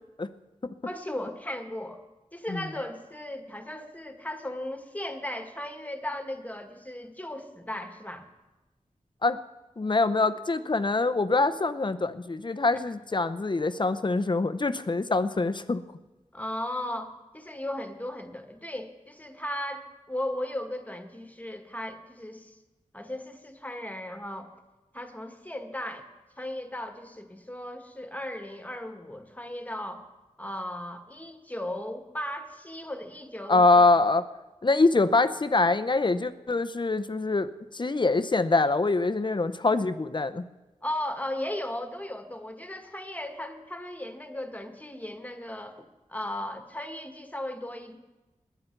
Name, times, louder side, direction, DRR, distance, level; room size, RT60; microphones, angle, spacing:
voice 1, 0.8-2.0 2.3-8.3 16.3-22.5 22.9-24.5 24.9-26.1 26.4-30.1 30.4-33.9 40.8-48.0, left 1 dB, 10° left, 5 dB, 1.6 m, -36 dB
voice 2, 9.8-15.8 33.5-34.2 34.6-40.4, left 3 dB, 35° left, 12 dB, 0.7 m, -24 dB
21.0 x 9.4 x 4.6 m, 1.1 s
cardioid pair, 50°, 14 cm